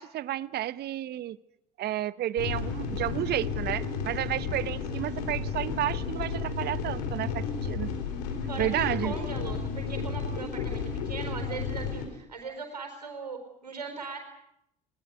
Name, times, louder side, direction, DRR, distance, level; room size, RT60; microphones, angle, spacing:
voice 1, 0.0-1.4 1.8-7.9 8.6-9.1, right 13 dB, 50° right, 0.9 m, -31 dB
sound 1, 2.4-12.1, left 5 dB, 75° left, 4.0 m, -32 dB
voice 2, 8.5-14.2, right 5 dB, 90° right, 4.4 m, -39 dB
21.5 x 18.5 x 9.4 m
hypercardioid pair, 60°, 21 cm